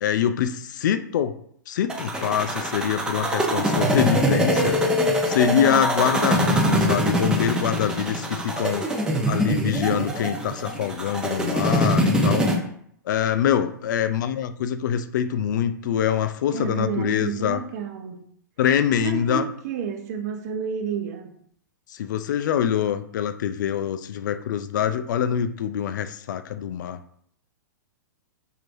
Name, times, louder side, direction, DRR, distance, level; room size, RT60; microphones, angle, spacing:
voice 1, 0.0-1.3 1.7-4.8 5.3-8.9 9.3-12.5 13.1-17.6 18.6-19.5 21.9-27.0, left 9 dB, 70° left, 0.4 m, -24 dB
sound 1, 1.9-12.6, equal, 10° right, 0.7 m, -23 dB
voice 2, 5.5-5.8 16.5-18.3 19.0-21.3, right 6 dB, 55° right, 0.7 m, -30 dB
4.8 x 3.2 x 2.6 m
hypercardioid pair, 115°, 10 cm